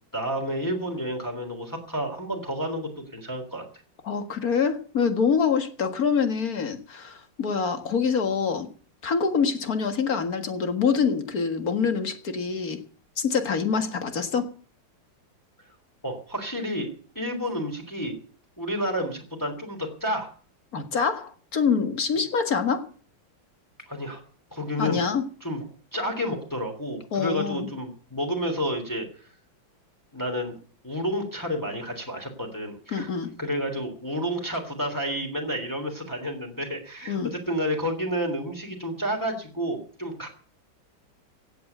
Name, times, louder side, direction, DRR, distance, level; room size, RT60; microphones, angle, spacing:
voice 1, 0.1-3.6 16.0-16.9 17.1-18.1 18.6-20.3 23.9-24.2 24.5-25.0 25.4-25.6 25.9-29.1 30.1-30.5 30.8-33.1 33.4-40.3, equal, 10° left, 3 dB, 3.1 m, -30 dB
voice 2, 4.0-8.7 9.0-12.8 13.2-14.5 20.7-22.9 24.8-25.2 27.1-27.7 32.9-33.3 37.1-37.3, left 6 dB, 50° left, 8 dB, 2.1 m, -25 dB
16.5 x 8.4 x 7.9 m, 0.43 s
omnidirectional pair, 2.0 m